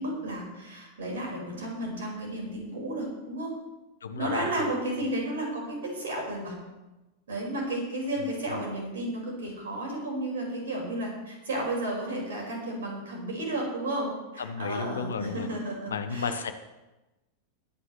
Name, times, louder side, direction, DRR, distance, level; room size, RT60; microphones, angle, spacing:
voice 1, 0.0-3.5 4.2-6.6 7.3-16.3, right 1 dB, 65° right, -1 dB, 4.9 m, -33 dB
voice 2, 4.0-4.3 8.2-8.6 14.4-15.5 15.9-16.5, left 5 dB, 70° left, 9 dB, 1.0 m, -33 dB
21.5 x 9.6 x 3.2 m, 1.1 s
figure-of-eight pair, 90°, 0 cm